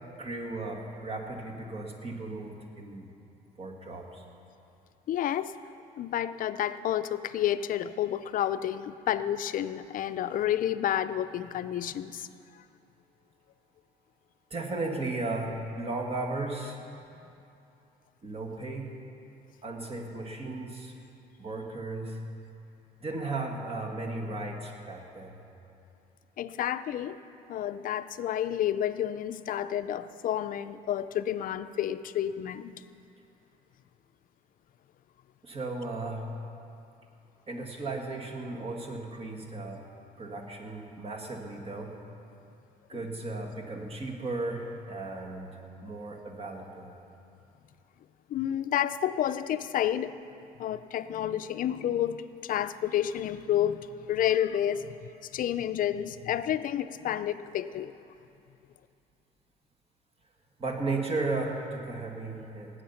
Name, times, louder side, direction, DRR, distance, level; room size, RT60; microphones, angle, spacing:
voice 1, 0.0-3.1 3.6-4.2 14.5-16.8 18.2-18.9 19.6-20.9 21.4-22.2 23.0-25.3 35.4-36.3 37.5-39.8 40.2-42.0 42.9-45.5 45.8-46.9 60.6-62.7, right 2 dB, 35° right, 1 dB, 2.1 m, -35 dB
voice 2, 5.1-5.5 6.0-12.3 26.4-27.2 27.5-32.7 42.9-43.0 48.3-50.2 50.6-54.9 55.3-57.9, left 11 dB, 55° left, 12 dB, 0.5 m, -30 dB
18.5 x 8.6 x 5.8 m, 2.7 s
cardioid pair, 110°, 17 cm